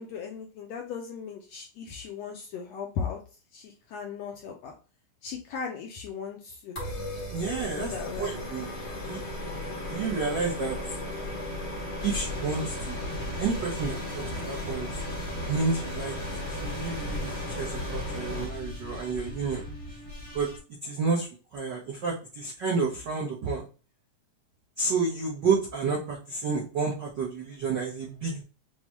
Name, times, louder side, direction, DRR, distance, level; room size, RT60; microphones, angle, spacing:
voice 1, 0.0-3.2 3.5-4.7 5.2-6.8 7.6-8.3, left 6 dB, 75° left, 2 dB, 1.5 m, -37 dB
sound 1, 6.8-18.4, left 1 dB, 60° left, 0.6 m, -36 dB
voice 2, 7.3-8.7 9.0-9.2 9.8-10.8 12.0-13.0 13.4-14.9 15.5-19.7 20.3-20.5 20.8-23.7 24.8-28.4, right 4 dB, 80° right, -4 dB, 1.0 m, -30 dB
sound 2, 12.0-20.6, left 1 dB, 25° left, 0.7 m, -39 dB
6.8 x 2.3 x 2.9 m, 0.35 s
omnidirectional pair, 3.5 m